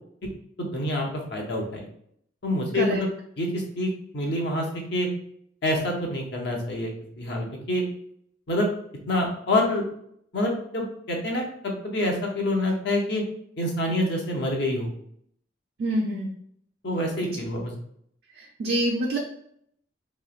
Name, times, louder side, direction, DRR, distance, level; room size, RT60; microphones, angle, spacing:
voice 1, 0.6-1.9 2.4-3.1 3.4-4.7 4.9-5.1 5.6-7.8 8.5-8.7 9.1-9.8 10.3-13.2 13.6-14.9 16.8-17.7, left 1 dB, 65° left, 0 dB, 0.8 m, -27 dB
voice 2, 15.8-16.3 18.4-19.2, right 1 dB, 60° right, -1 dB, 0.5 m, -26 dB
3.1 x 2.9 x 2.4 m, 0.69 s
head